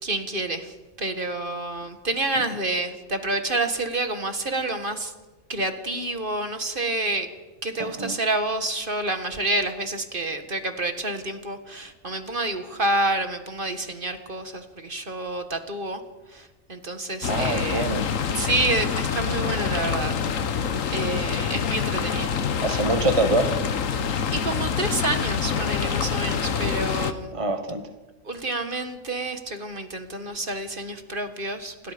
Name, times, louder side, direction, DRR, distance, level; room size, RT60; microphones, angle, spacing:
voice 1, 0.0-0.7 1.0-5.1 5.5-7.3 7.6-16.0 16.3-17.9 18.3-20.2 20.9-22.3 24.3-27.3 28.3-31.9, right 2 dB, 40° right, 7 dB, 1.8 m, -28 dB
voice 2, 7.8-8.1 17.3-18.1 22.6-23.6 27.3-27.8, right 2 dB, 25° right, 6 dB, 1.4 m, -25 dB
sound 1, 17.2-27.1, left 7 dB, 80° left, 1.5 m, -26 dB
28.0 x 21.0 x 5.2 m, 1.2 s
omnidirectional pair, 1.4 m